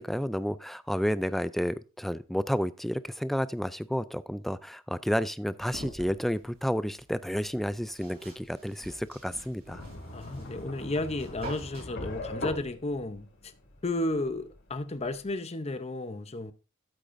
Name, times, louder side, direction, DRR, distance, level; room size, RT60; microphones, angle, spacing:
voice 1, 0.0-9.8, equal, ahead, 0.3 m, -31 dB
sound 1, 5.7-11.8, right 1 dB, 50° right, 5.4 m, -47 dB
sound 2, 9.7-15.3, left 1 dB, 60° left, 2.7 m, -41 dB
voice 2, 10.1-13.3 13.8-16.5, left 2 dB, 30° left, 0.7 m, -33 dB
12.5 x 8.2 x 2.6 m
head